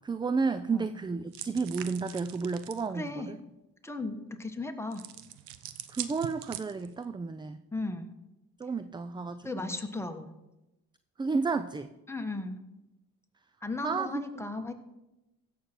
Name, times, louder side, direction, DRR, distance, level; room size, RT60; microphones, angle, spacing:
voice 1, 0.0-3.4 5.9-7.6 8.6-9.7 11.2-11.9 13.8-14.1, right 4 dB, 10° right, 12 dB, 0.3 m, -32 dB
sound 1, 1.3-2.9 4.9-7.0, right 12 dB, 85° right, 0.7 m, -42 dB
voice 2, 2.9-3.4 3.8-5.1 7.7-8.1 9.4-10.3 12.1-12.6 13.6-14.7, left 2 dB, 5° left, 4 dB, 1.5 m, -36 dB
16.0 x 6.7 x 4.5 m, 0.96 s
supercardioid pair, 65°, 40 cm